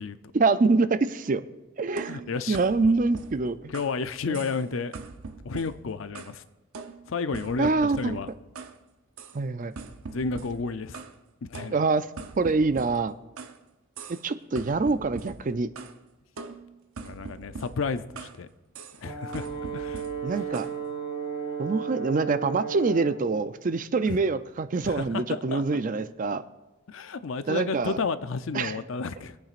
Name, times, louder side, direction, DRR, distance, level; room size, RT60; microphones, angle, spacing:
voice 1, 0.3-1.4 1.8-2.2 2.5-3.7 4.3-4.4 7.6-8.2 9.3-9.7 11.7-12.1 12.4-13.1 14.2-15.7 20.2-20.7 21.6-26.4 27.5-28.0 28.5-28.8, right 3 dB, 40° right, 12 dB, 0.4 m, -25 dB
sound 1, 2.0-4.0 4.3-4.7 4.9-6.4 6.7-8.8 9.2-9.4 9.8-11.2 11.5-13.6 14.0-14.3 14.6-16.0 16.4-18.4 18.7-19.0 19.3-20.8, right 4 dB, 85° right, 0.7 m, -42 dB
voice 2, 2.1-2.6 3.7-4.9 5.4-6.4 7.1-7.7 8.0-8.3 10.1-11.0 11.4-11.8 17.0-18.5 19.0-19.5 19.7-20.0 24.1-24.2 24.8-25.7 26.9-29.4, left 4 dB, 70° left, 13 dB, 0.5 m, -31 dB
Brass instrument, 19.0-23.2, right 6 dB, 20° left, 2.5 m, -34 dB
24.0 x 8.9 x 2.5 m, 1.1 s
head